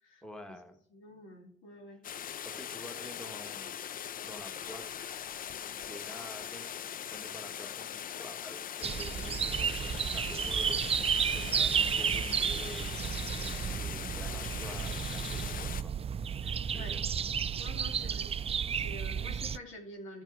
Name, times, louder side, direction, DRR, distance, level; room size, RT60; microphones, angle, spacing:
voice 1, 0.2-0.8 1.9-2.0 2.4-3.8 4.2-10.8 11.2-13.0 13.4-16.0 16.6-17.0, equal, 5° left, 5 dB, 1.5 m, -49 dB
voice 2, 0.9-2.0 11.4-11.7 16.4-16.9 17.6-18.3 18.6-20.2, left 1 dB, 85° left, 1 dB, 2.9 m, -48 dB
sound 1, 2.0-15.8, left 9 dB, 45° left, 0.4 m, -41 dB
sound 2, 8.8-19.6, right 7 dB, 30° right, 0.3 m, -32 dB
14.0 x 6.1 x 4.8 m, 0.62 s
cardioid pair, 90°, 20 cm